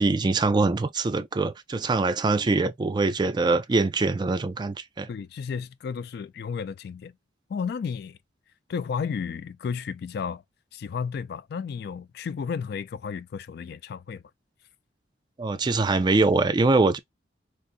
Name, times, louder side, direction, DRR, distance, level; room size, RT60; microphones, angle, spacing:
voice 1, 0.0-5.1 15.4-17.0, right 3 dB, 25° right, 0.3 m, -23 dB
voice 2, 5.1-7.1 7.5-8.2 8.7-10.4 10.7-14.2, left 6 dB, 60° left, 0.3 m, -33 dB
3.9 x 2.5 x 2.4 m
head